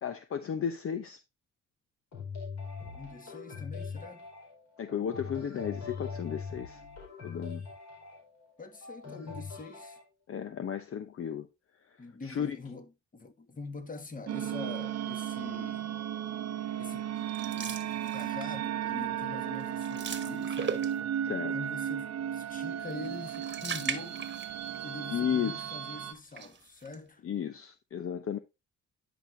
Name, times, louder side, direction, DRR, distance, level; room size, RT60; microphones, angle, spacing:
voice 1, 0.0-1.2 4.8-6.8 7.2-7.6 10.3-11.5 11.9-12.6 21.2-21.6 25.1-25.8 27.2-28.4, left 8 dB, 50° left, 0.8 m, -34 dB
sound 1, 2.1-10.0, left 5 dB, 65° left, 4.6 m, -42 dB
voice 2, 2.9-4.3 8.6-10.0 12.0-16.0 16.8-17.1 17.5-20.9 21.5-24.3 24.8-27.2, left 3 dB, 25° left, 1.5 m, -44 dB
sound 2, 14.3-26.1, right 10 dB, 60° right, 1.0 m, -35 dB
sound 3, 17.3-18.6 19.0-19.2 19.5-21.3 23.0-24.8 25.1-25.2 26.1-27.0, right 6 dB, 35° right, 1.3 m, -39 dB
10.0 x 6.0 x 2.6 m
cardioid pair, 90°, 30 cm